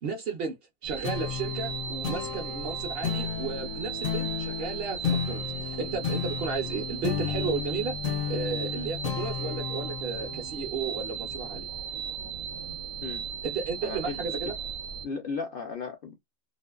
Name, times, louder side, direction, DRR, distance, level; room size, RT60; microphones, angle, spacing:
voice 1, 0.0-8.0 8.3-11.7 13.4-14.6, right 5 dB, 60° right, 0.7 m, -34 dB
sound 1, 0.8-15.1, right 8 dB, 85° right, 1.0 m, -37 dB
sound 2, 1.0-11.9, left 8 dB, 85° left, 1.0 m, -33 dB
voice 2, 13.8-14.2 15.0-16.2, left 5 dB, 60° left, 0.6 m, -35 dB
2.6 x 2.4 x 2.2 m
omnidirectional pair, 1.4 m